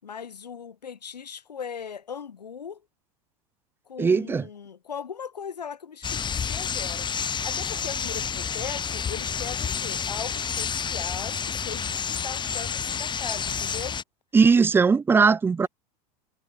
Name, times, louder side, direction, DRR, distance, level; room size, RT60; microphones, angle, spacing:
voice 1, 0.0-2.8 3.9-14.0, left 7 dB, 90° left, 4.6 m, -39 dB
voice 2, 4.0-4.5 14.3-15.7, right 5 dB, 10° right, 0.3 m, -19 dB
sound 1, 6.0-14.0, left 7 dB, 20° left, 1.6 m, -29 dB
hypercardioid pair, 95°, 20 cm